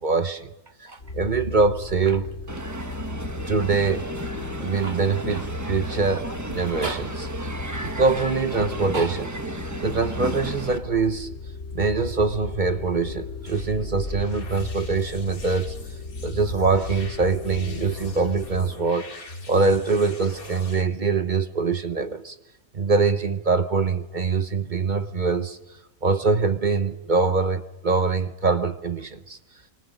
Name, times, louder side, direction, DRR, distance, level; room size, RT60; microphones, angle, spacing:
voice 1, 0.0-0.5 0.8-2.6 3.5-4.1 4.6-7.3 7.8-9.3 9.8-11.3 11.7-15.7 16.2-19.1 19.5-22.3 22.7-25.6 26.0-29.4, right 4 dB, 40° right, 0.9 m, -24 dB
sound 1, 1.0-18.7, left 4 dB, 50° left, 2.6 m, -36 dB
Crowd, 2.5-10.8, right 2 dB, 15° right, 1.0 m, -34 dB
sound 2, 13.5-20.8, left 2 dB, 80° left, 3.0 m, -39 dB
25.5 x 24.5 x 5.1 m
omnidirectional pair, 1.5 m